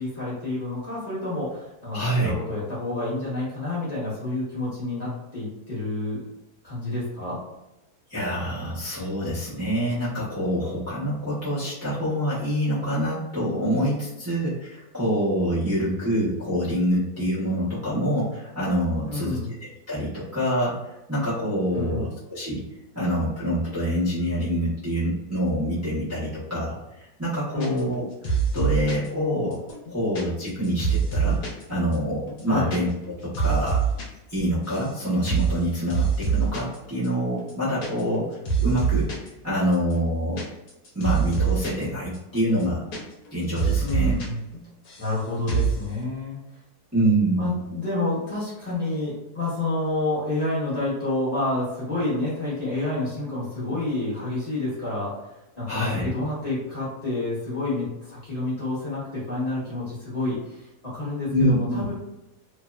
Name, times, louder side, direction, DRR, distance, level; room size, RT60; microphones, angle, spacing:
voice 1, 0.0-6.2 6.6-7.4 19.1-19.5 21.7-22.1 27.5-28.0 32.5-32.7 43.8-44.4 45.0-46.4 47.4-55.1 55.6-61.9, left 2 dB, 30° left, -10 dB, 0.9 m, -29 dB
voice 2, 1.9-2.3 8.1-19.4 19.9-22.6 22.9-29.6 29.9-31.4 31.7-32.9 33.2-33.8 34.3-39.1 39.4-40.4 40.9-42.8 43.3-44.2 46.9-47.5 55.7-56.1 61.3-61.8, equal, 20° right, -12 dB, 0.4 m, -26 dB
sound 1, 27.6-28.0 28.2-29.1 29.5-31.6 31.9-32.0 32.3-32.8 33.0-34.1 34.3-34.9 35.3-35.6 35.9-36.8 37.0-37.1 37.4-38.2 38.4-39.3 39.7-41.8 42.1-42.2 42.5-43.3 43.6-44.3 44.5-45.2 45.5-45.8, right 6 dB, 75° left, 1.1 m, -25 dB
2.8 x 2.0 x 2.2 m, 0.94 s
omnidirectional pair, 1.7 m